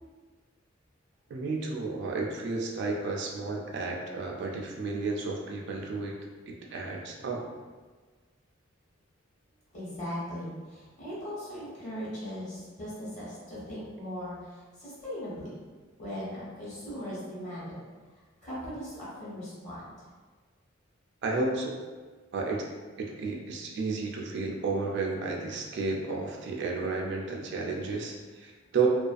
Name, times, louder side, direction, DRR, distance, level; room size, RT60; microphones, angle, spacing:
voice 1, 1.3-6.2 6.5-7.4 21.2-21.8 22.3-22.6 23.0-28.9, right 3 dB, 60° right, 0 dB, 0.3 m, -32 dB
voice 2, 9.7-15.5 16.0-17.8 18.4-19.9, equal, 35° left, -9 dB, 1.1 m, -39 dB
2.4 x 2.3 x 2.4 m, 1.4 s
head